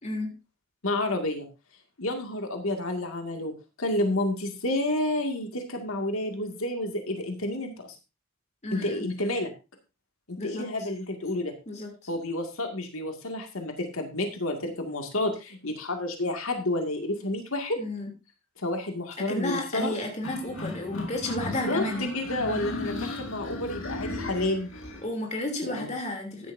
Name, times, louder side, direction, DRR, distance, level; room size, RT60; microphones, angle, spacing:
voice 1, 0.0-0.3 8.6-9.1 10.4-10.7 11.7-11.9 17.8-18.1 19.3-22.0 25.0-26.5, left 1 dB, 35° left, 1 dB, 3.1 m, -32 dB
voice 2, 0.8-1.5 2.0-3.5 3.8-7.9 8.7-9.5 10.3-11.5 12.1-17.8 18.6-20.0 21.5-24.7 25.7-25.9, left 1 dB, 90° left, 4 dB, 2.2 m, -30 dB
sound 1, 20.2-25.0, left 2 dB, 75° left, 2.4 m, -35 dB
14.0 x 10.5 x 2.7 m, 0.27 s
head